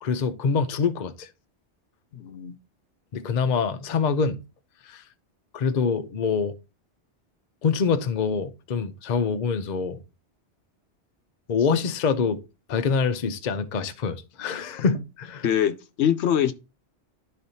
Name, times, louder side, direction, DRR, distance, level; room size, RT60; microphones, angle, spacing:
voice 1, 0.0-1.3 3.1-4.4 4.9-5.0 5.5-6.5 7.6-10.0 11.5-12.4 12.7-15.4, left 5 dB, 50° left, 0.6 m, -25 dB
voice 2, 2.1-2.6 15.4-16.5, left 9 dB, 70° left, 0.9 m, -23 dB
12.0 x 4.1 x 2.7 m
omnidirectional pair, 1.2 m